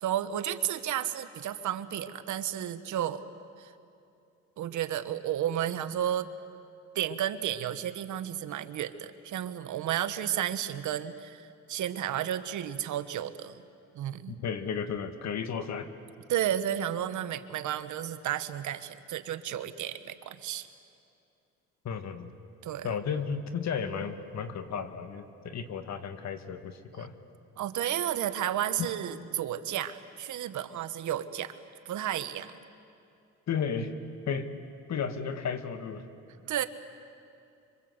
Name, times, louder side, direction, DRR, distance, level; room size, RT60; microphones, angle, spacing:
voice 1, 0.0-3.2 3.6-3.7 4.6-6.3 6.9-13.5 13.9-14.4 16.3-20.7 22.6-22.9 27.6-31.5 31.8-32.5 36.5-36.6, right 11 dB, 75° right, 11 dB, 1.3 m, -32 dB
voice 2, 14.3-15.9 21.8-22.3 22.8-27.1 28.8-28.9 33.5-33.9 34.3-34.5 34.9-36.1, left 6 dB, 65° left, 9 dB, 1.9 m, -33 dB
26.0 x 25.0 x 8.0 m, 2.5 s
cardioid pair, 90°, 30 cm